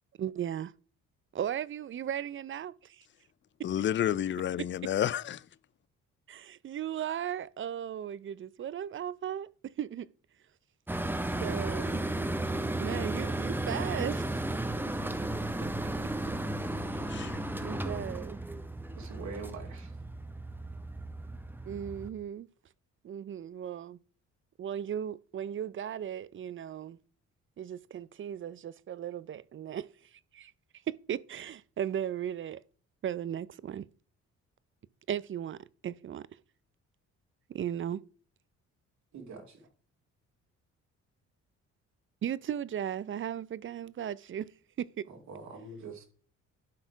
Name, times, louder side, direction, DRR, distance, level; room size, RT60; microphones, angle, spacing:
voice 1, 0.2-0.7 1.3-3.1 6.3-10.1 11.4-12.0 12.8-14.3 15.6-15.7 17.2-17.3 17.6-18.4 21.7-22.5 23.0-24.0 24.6-27.0 27.6-30.5 30.9-32.6 33.0-33.9 35.1-36.3 37.5-38.0 42.2-44.5 44.8-45.1, right 9 dB, 40° right, 0.5 m, -36 dB
voice 2, 3.6-5.4 17.1-17.4, left 10 dB, 40° left, 0.4 m, -30 dB
sound 1, 10.9-22.1, right 1 dB, 5° right, 0.9 m, -34 dB
voice 3, 18.9-20.0 39.1-39.7 45.1-46.0, right 4 dB, 70° right, 2.5 m, -44 dB
11.5 x 4.3 x 4.5 m
cardioid pair, 90°, 30 cm